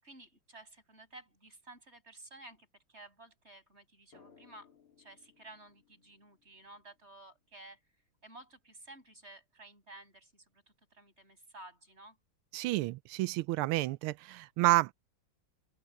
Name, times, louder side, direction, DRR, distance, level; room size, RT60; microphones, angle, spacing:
voice 1, 0.0-4.7 5.0-7.8 8.2-12.2, right 2 dB, 30° right, 7.6 m, -54 dB
Drum, 4.1-7.5, left 6 dB, 85° left, 4.6 m, -64 dB
voice 2, 12.5-14.9, right 18 dB, 90° right, 1.5 m, -30 dB
open air
omnidirectional pair, 2.3 m